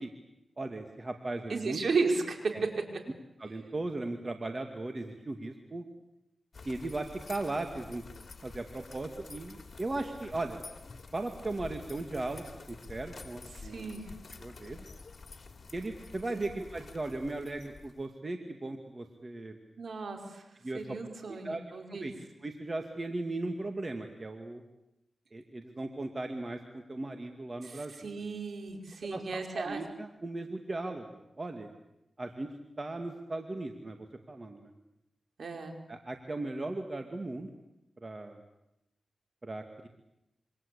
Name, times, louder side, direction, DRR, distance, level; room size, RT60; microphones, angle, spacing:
voice 1, 0.6-1.8 2.5-2.6 3.4-5.8 6.6-8.0 8.4-10.6 11.1-13.8 14.4-14.9 15.7-19.6 20.6-21.0 21.3-21.6 21.9-22.1 22.4-24.6 25.3-28.2 29.0-31.7 32.2-34.0 34.3-34.7 35.9-37.5 38.0-38.4 39.4-39.9, right 2 dB, 40° right, 5 dB, 2.5 m, -37 dB
voice 2, 1.5-2.6 13.5-14.1 19.8-20.4 20.7-22.1 27.6-29.8 35.4-35.7, right 4 dB, 75° right, 4 dB, 5.1 m, -34 dB
sound 1, 6.5-18.1, left 4 dB, 60° left, 3.1 m, -49 dB
27.0 x 25.5 x 8.6 m, 0.88 s
cardioid pair, 55°, 0 cm